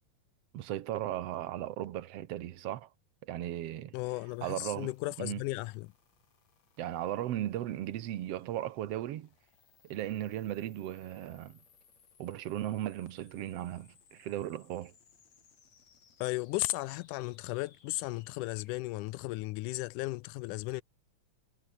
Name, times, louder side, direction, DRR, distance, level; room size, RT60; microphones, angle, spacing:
voice 1, 0.5-2.9 3.2-3.9 4.4-4.9 5.2-5.4 6.8-9.3 9.8-11.6 12.2-14.9, right 12 dB, 65° right, 1.6 m, -36 dB
voice 2, 3.9-5.9 16.2-20.8, left 20 dB, 85° left, 1.8 m, -35 dB
sound 1, 4.3-18.8, left 6 dB, 50° left, 4.2 m, -66 dB
omnidirectional pair, 4.1 m